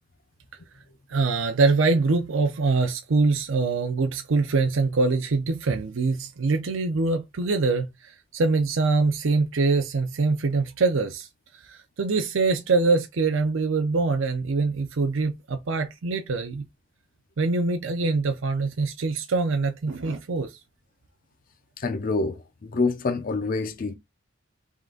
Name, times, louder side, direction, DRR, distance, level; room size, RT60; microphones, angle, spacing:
voice 1, 1.1-11.3 11.5-16.6 17.4-20.6, right 3 dB, 70° right, 0.6 m, -24 dB
voice 2, 21.8-23.9, left 3 dB, 45° left, 0.5 m, -27 dB
3.7 x 3.3 x 3.7 m
head